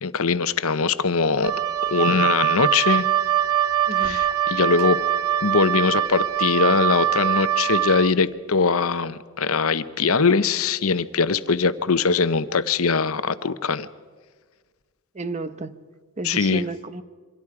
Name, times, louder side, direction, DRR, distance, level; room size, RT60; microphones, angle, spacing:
voice 1, 0.0-1.5 1.9-3.0 4.0-5.0 5.4-13.9 16.2-16.6, left 4 dB, 70° left, 13 dB, 0.8 m, -21 dB
Wind instrument woodwind instrument, 1.4-8.1, right 10 dB, 80° right, 0.6 m, -23 dB
voice 2, 3.9-4.2 15.1-15.8 16.2-17.0, right 3 dB, 30° right, 12 dB, 0.8 m, -32 dB
27.0 x 24.5 x 4.8 m, 1.5 s
head